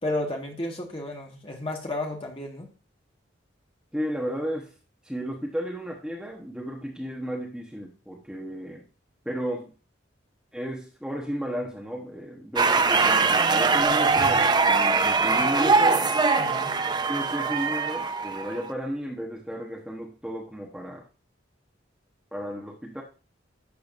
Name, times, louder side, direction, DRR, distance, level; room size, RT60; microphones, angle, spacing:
voice 1, 0.0-2.7 16.4-16.8, left 1 dB, 30° left, 1 dB, 1.7 m, -32 dB
voice 2, 3.9-4.7 5.0-8.8 9.2-9.7 10.5-16.1 17.1-21.0 22.3-23.0, equal, 5° right, -2 dB, 1.1 m, -33 dB
sound 1, 12.6-18.7, right 4 dB, 20° right, 0.4 m, -22 dB
12.0 x 6.7 x 2.6 m, 0.34 s
head